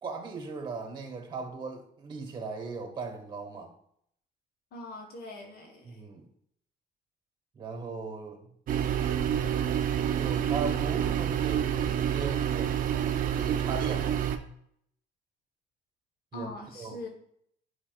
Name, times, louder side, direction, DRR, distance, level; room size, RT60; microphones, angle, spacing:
voice 1, 0.0-3.7 5.8-6.3 7.5-8.5 10.2-12.8 13.3-14.2 16.3-16.5 16.7-17.0, right 4 dB, 25° right, 3 dB, 1.6 m, -38 dB
voice 2, 4.7-6.0 16.3-17.1, left 1 dB, 65° left, 1 dB, 1.2 m, -42 dB
sound 1, 8.7-14.4, right 9 dB, 55° right, 0.6 m, -28 dB
8.5 x 5.2 x 2.4 m, 0.69 s
cardioid pair, 110°, 17 cm